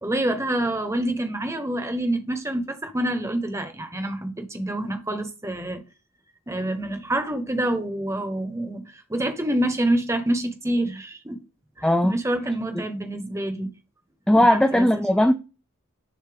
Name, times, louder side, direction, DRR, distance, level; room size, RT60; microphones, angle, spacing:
voice 1, 0.0-5.8 6.5-11.4 11.8-13.7 14.3-14.9, right 1 dB, 15° right, 0.9 m, -27 dB
voice 2, 11.8-12.2 12.8-12.9 14.3-15.3, left 1 dB, 5° left, 0.3 m, -18 dB
7.0 x 2.7 x 4.9 m
head